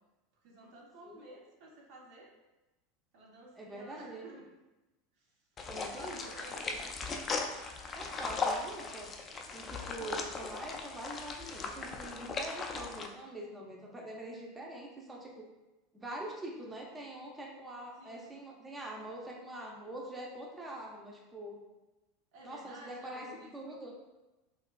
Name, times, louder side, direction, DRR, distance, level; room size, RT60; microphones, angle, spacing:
voice 1, 0.4-2.3 3.1-4.5 5.1-5.4 5.8-7.0 17.9-18.4 22.3-23.8, right 1 dB, 60° right, -1 dB, 0.7 m, -52 dB
voice 2, 3.6-4.2 5.7-6.2 6.6-6.8 7.9-9.1 9.5-15.5 15.9-21.6 22.4-23.2 23.5-23.9, right 1 dB, 15° right, -2 dB, 0.7 m, -44 dB
sound 1, 5.6-13.1, left 4 dB, 30° left, 0.4 m, -38 dB
4.0 x 2.4 x 2.4 m, 1.0 s
hypercardioid pair, 95°, 0 cm